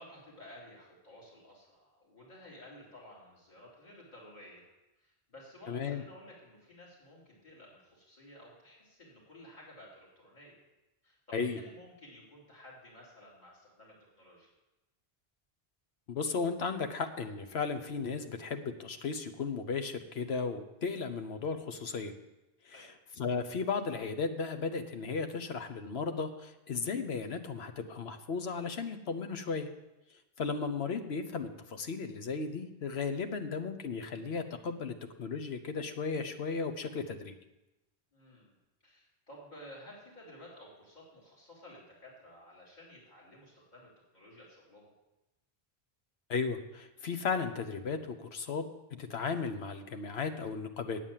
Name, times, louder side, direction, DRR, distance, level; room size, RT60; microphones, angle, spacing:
voice 1, 0.0-4.7 5.0-10.5 11.0-14.5 22.7-22.9 38.1-38.6 38.8-44.9, left 1 dB, 45° left, -6 dB, 3.4 m, -54 dB
voice 2, 5.7-6.0 11.3-11.6 16.1-22.1 22.6-22.7 23.2-29.7 30.4-37.3 46.3-48.6 49.0-51.0, left 5 dB, 80° left, 7 dB, 1.1 m, -35 dB
9.0 x 8.4 x 7.3 m, 0.98 s
omnidirectional pair, 1.0 m